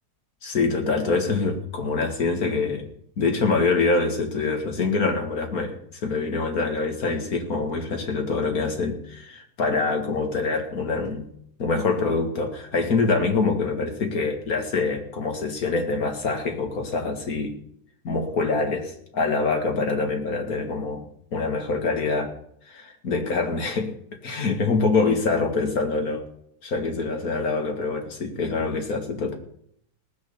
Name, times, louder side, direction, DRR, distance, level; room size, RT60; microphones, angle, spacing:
voice 1, 0.4-2.9 3.2-11.3 11.6-17.6 18.0-21.1 21.3-22.3 22.7-23.9 24.2-26.2 26.6-29.4, left 4 dB, 55° left, 4 dB, 2.4 m, -25 dB
18.5 x 6.7 x 6.9 m, 0.69 s
omnidirectional pair, 1.9 m